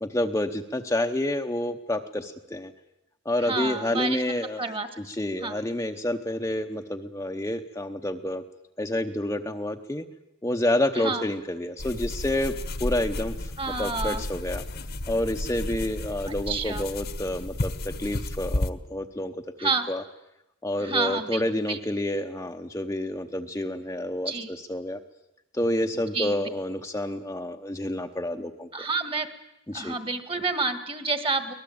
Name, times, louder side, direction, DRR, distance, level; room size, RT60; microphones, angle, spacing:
voice 1, 0.0-2.7 3.2-4.6 5.0-8.4 8.8-10.0 10.4-13.5 13.8-14.6 15.1-19.4 19.6-20.0 20.6-25.0 25.5-28.7 29.7-29.9, left 1 dB, 15° left, 4 dB, 0.9 m, -29 dB
voice 2, 3.4-4.2 4.6-4.9 5.4-5.6 11.0-11.2 13.6-14.2 16.5-16.8 19.6-19.9 20.8-21.8 24.3-24.5 26.1-26.3 28.7-29.3 29.7-31.5, right 3 dB, 25° right, 10 dB, 1.8 m, -29 dB
sound 1, 11.8-18.7, left 1 dB, 50° left, 1.2 m, -32 dB
24.0 x 19.0 x 8.7 m, 0.91 s
head